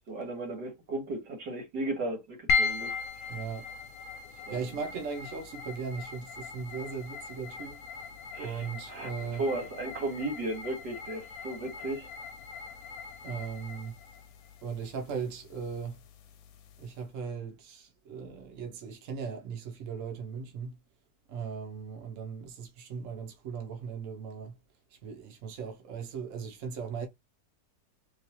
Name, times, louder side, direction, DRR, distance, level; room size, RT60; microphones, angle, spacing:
voice 1, 0.1-2.9 4.5-4.7 8.3-9.1 9.4-12.1, right 2 dB, 90° right, 1.9 m, -35 dB
sound 1, 2.5-17.0, left 5 dB, 70° left, 1.0 m, -38 dB
voice 2, 3.3-3.7 4.3-9.4 13.2-13.9 14.6-16.0 16.8-20.8 21.3-24.5 24.9-27.1, right 6 dB, 55° right, 1.1 m, -38 dB
3.1 x 2.9 x 2.8 m
omnidirectional pair, 1.8 m